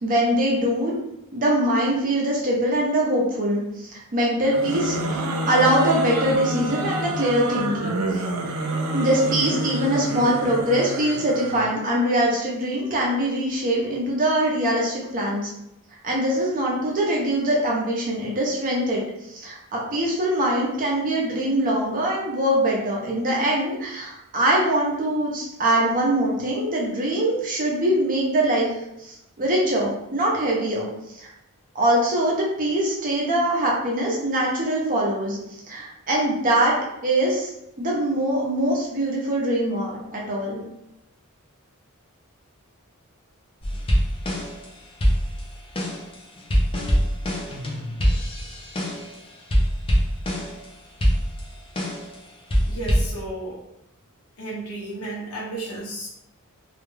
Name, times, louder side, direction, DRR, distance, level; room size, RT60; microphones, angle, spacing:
voice 1, 0.0-0.9 1.3-5.0 5.5-8.0 8.9-15.5 16.0-19.0 19.3-28.7 29.0-30.9 31.2-31.3 31.7-35.4 35.7-36.7 37.0-37.5 37.8-40.6, right 1 dB, 40° right, -3 dB, 0.6 m, -23 dB
sound 1, 4.4-11.7, right 2 dB, 85° right, 0.4 m, -28 dB
sound 2, 43.6-44.7 45.0-49.2 49.5-50.7 51.0-52.2 52.5-53.1, equal, 25° left, 0.5 m, -23 dB
voice 2, 52.7-53.6 54.4-56.1, right 2 dB, 85° left, -5 dB, 0.8 m, -33 dB
2.3 x 2.2 x 3.1 m, 0.83 s
head